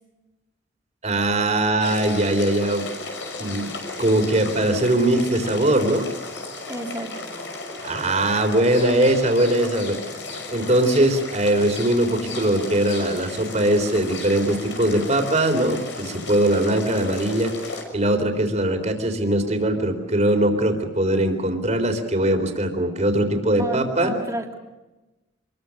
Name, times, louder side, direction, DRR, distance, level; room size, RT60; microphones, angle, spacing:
voice 1, 1.0-2.9 3.4-3.7 4.0-6.1 7.8-10.0 10.5-17.5 17.9-24.1, right 1 dB, 40° right, 6 dB, 3.8 m, -21 dB
sound 1, 1.8-17.8, left 3 dB, 90° left, 6.0 m, -34 dB
voice 2, 6.7-7.1 23.5-24.5, right 1 dB, 20° right, 1 dB, 3.1 m, -30 dB
26.5 x 22.0 x 6.5 m, 1.1 s
head